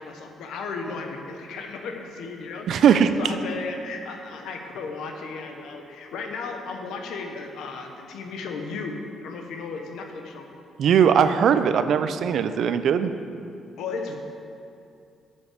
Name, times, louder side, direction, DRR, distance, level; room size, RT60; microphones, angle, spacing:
voice 1, 0.0-9.0 9.2-10.5 13.8-14.2, left 4 dB, 80° left, 4 dB, 1.0 m, -35 dB
voice 2, 2.7-3.1 10.8-13.1, right 8 dB, 70° right, 11 dB, 0.5 m, -19 dB
9.3 x 7.2 x 5.0 m, 2.5 s
cardioid pair, 90°, 0 cm